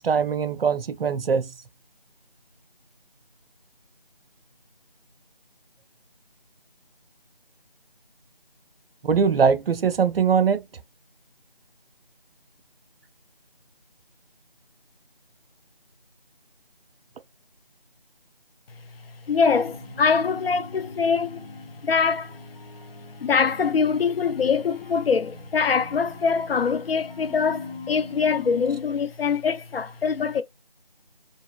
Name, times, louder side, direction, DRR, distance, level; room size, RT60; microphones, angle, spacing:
voice 1, 0.0-1.5 9.0-10.6, right 6 dB, 80° right, 0.4 m, -21 dB
voice 2, 19.3-21.5 21.8-22.4 23.2-30.4, left 5 dB, 80° left, 0.4 m, -23 dB
sound 1, 19.7-28.8, left 3 dB, 55° left, 0.9 m, -42 dB
2.8 x 2.2 x 2.2 m
figure-of-eight pair, 175°, 29 cm